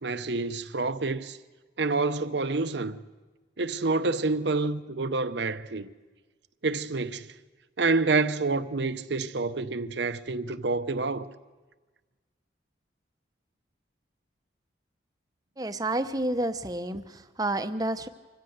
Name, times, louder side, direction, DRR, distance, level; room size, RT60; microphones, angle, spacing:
voice 1, 0.0-1.4 1.8-3.0 3.6-5.9 6.6-7.3 7.8-11.3, right 3 dB, 65° right, 0.8 m, -28 dB
voice 2, 15.6-18.1, right 1 dB, 20° right, 0.8 m, -30 dB
25.5 x 15.5 x 7.9 m
head